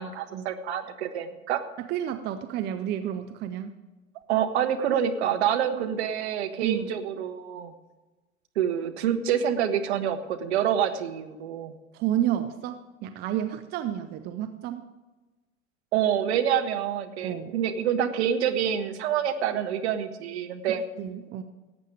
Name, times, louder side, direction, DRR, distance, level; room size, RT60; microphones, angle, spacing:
voice 1, 0.0-1.6 4.3-7.7 8.5-11.8 15.9-20.8, right 9 dB, 50° right, 7 dB, 1.3 m, -27 dB
voice 2, 1.8-3.7 4.9-5.0 6.6-6.9 11.9-14.8 17.2-17.5 21.0-21.4, right 11 dB, 25° right, 9 dB, 0.6 m, -30 dB
17.5 x 8.3 x 4.9 m, 1.2 s
figure-of-eight pair, 85°, 41 cm